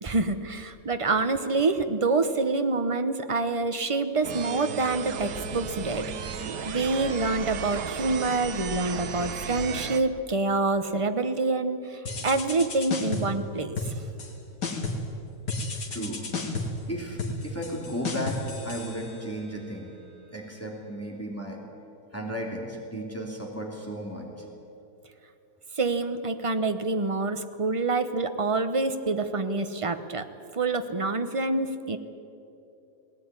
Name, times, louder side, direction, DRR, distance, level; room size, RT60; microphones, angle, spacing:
voice 1, 0.0-13.9 25.8-30.3 30.5-32.0, right 3 dB, 25° right, 8 dB, 0.7 m, -27 dB
sound 1, 4.2-10.0, right 6 dB, 70° right, 1.6 m, -35 dB
sound 2, 12.1-13.4 13.8-14.3 14.6-15.1 15.5-19.5, left 3 dB, 70° left, 2.7 m, -33 dB
voice 2, 15.9-16.2 16.9-19.9 20.3-21.6 22.1-24.4, equal, 10° left, -1 dB, 2.9 m, -34 dB
19.0 x 18.0 x 9.7 m, 2.8 s
omnidirectional pair, 1.9 m